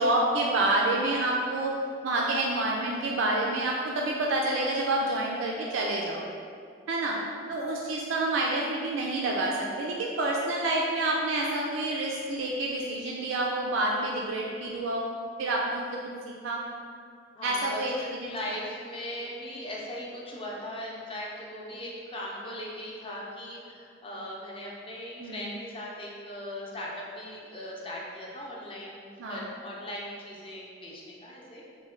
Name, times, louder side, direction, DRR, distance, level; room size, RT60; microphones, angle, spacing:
voice 1, 0.0-1.7 2.0-6.3 6.9-7.2 7.5-15.1 15.4-15.8 16.3-16.6 17.4-17.9 18.2-18.5 25.2-25.5 29.2-29.5, right 2 dB, 85° right, -2 dB, 0.3 m, -28 dB
voice 2, 17.4-31.6, left 1 dB, 30° left, -4 dB, 0.5 m, -39 dB
3.1 x 2.1 x 3.6 m, 2.3 s
head